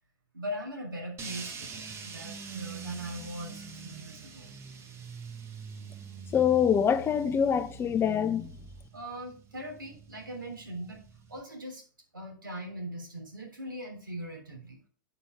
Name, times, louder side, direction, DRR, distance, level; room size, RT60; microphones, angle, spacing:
voice 1, 0.3-4.6 8.9-11.0 11.3-11.8 12.1-14.8, equal, 80° right, 3.3 m, -40 dB
sound 1, 1.2-11.4, right 5 dB, 25° right, 1.3 m, -44 dB
voice 2, 6.3-8.5, left 8 dB, 20° left, 0.8 m, -25 dB
8.7 x 7.4 x 3.4 m
figure-of-eight pair, 95°, 11 cm